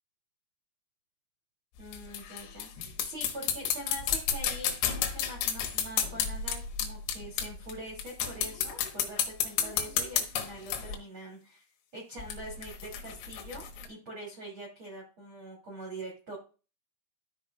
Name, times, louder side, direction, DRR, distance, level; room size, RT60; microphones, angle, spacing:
sound 1, 1.8-7.7 8.0-11.0 12.2-13.9, left 8 dB, 85° left, 3.9 m, -32 dB
voice 1, 1.8-11.6 11.9-16.4, right 1 dB, 35° right, -3 dB, 2.3 m, -44 dB
13.5 x 5.7 x 2.4 m, 0.34 s
omnidirectional pair, 5.9 m